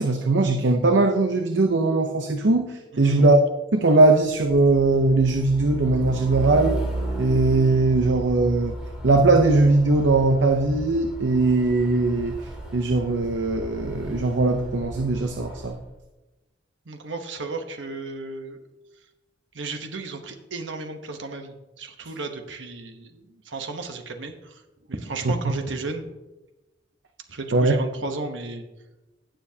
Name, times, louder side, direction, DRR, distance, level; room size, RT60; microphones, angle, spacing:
voice 1, 0.0-3.4 3.7-6.8 7.2-8.8 9.0-12.4 12.7-15.8 25.2-25.3 27.5-27.7, right 2 dB, 70° right, 5 dB, 0.7 m, -20 dB
voice 2, 2.9-3.2 16.9-18.6 19.5-24.6 24.9-26.1 27.3-28.6, right 3 dB, 85° right, 5 dB, 1.0 m, -34 dB
Truck, 4.5-15.8, right 1 dB, 5° right, 2.3 m, -34 dB
16.5 x 7.0 x 2.8 m, 1.0 s
head